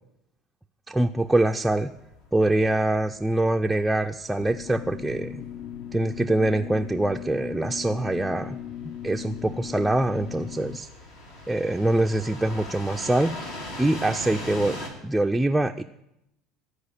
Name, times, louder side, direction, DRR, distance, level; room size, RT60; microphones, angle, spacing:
voice 1, 0.9-1.9 2.3-5.4 5.9-8.6 8.8-10.9 11.5-13.5 13.8-14.8 15.0-15.8, right 1 dB, 5° right, 3 dB, 0.3 m, -24 dB
sound 1, 1.2-14.9, left 1 dB, 85° left, 2.3 m, -41 dB
sound 2, 4.4-10.8, left 10 dB, 70° left, 0.5 m, -38 dB
13.0 x 4.8 x 6.5 m, 0.85 s
supercardioid pair, 105°, 0 cm